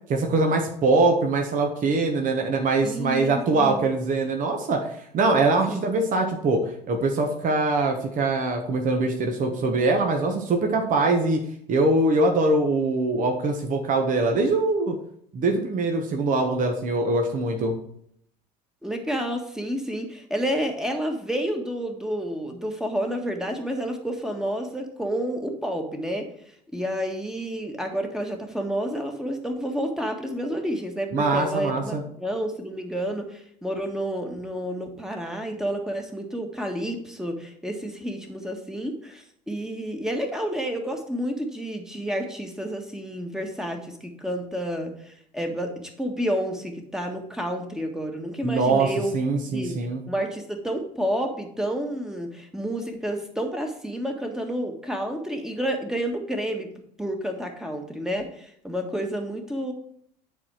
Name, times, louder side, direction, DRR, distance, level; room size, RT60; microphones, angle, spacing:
voice 1, 0.1-4.9 5.1-11.4 11.7-14.9 15.3-17.7 31.1-32.0 48.4-50.0, right 3 dB, 40° right, 3 dB, 1.4 m, -23 dB
voice 2, 2.8-3.9 5.7-5.8 18.8-26.2 26.7-45.7 46.0-49.2 49.5-49.8 50.1-56.7 57.0-59.7, equal, 5° right, 3 dB, 1.6 m, -30 dB
9.8 x 4.3 x 4.7 m, 0.69 s
hypercardioid pair, 70°, 21 cm